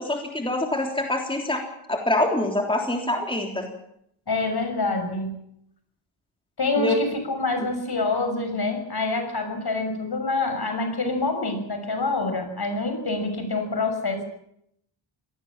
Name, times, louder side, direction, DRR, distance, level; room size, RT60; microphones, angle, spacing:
voice 1, 0.0-1.6 1.9-3.7 6.8-7.0, left 1 dB, 10° left, 2 dB, 3.5 m, -25 dB
voice 2, 4.3-5.4 6.6-14.2, left 3 dB, 55° left, 6 dB, 6.4 m, -26 dB
26.5 x 19.0 x 7.4 m, 0.74 s
wide cardioid pair, 125°, 47 cm